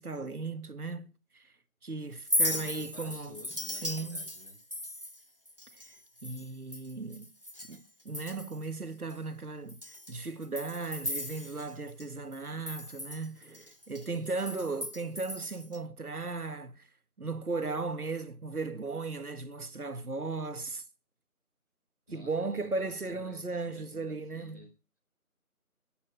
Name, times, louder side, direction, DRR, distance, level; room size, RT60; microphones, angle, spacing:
voice 1, 0.0-1.4 1.8-3.4 3.8-4.2 6.2-7.3 7.7-9.8 10.1-16.8 17.2-20.8 22.1-24.6, right 3 dB, 85° right, 1.8 m, -36 dB
Chink clink, 2.1-7.8 8.1-8.7 9.1-9.2 9.7-12.1 12.3-15.8, left 1 dB, 40° right, 0.6 m, -37 dB
voice 2, 2.4-4.6 14.1-14.6 22.1-24.7, equal, 10° left, 4.1 m, -52 dB
13.0 x 9.4 x 6.0 m
figure-of-eight pair, 180°, 44 cm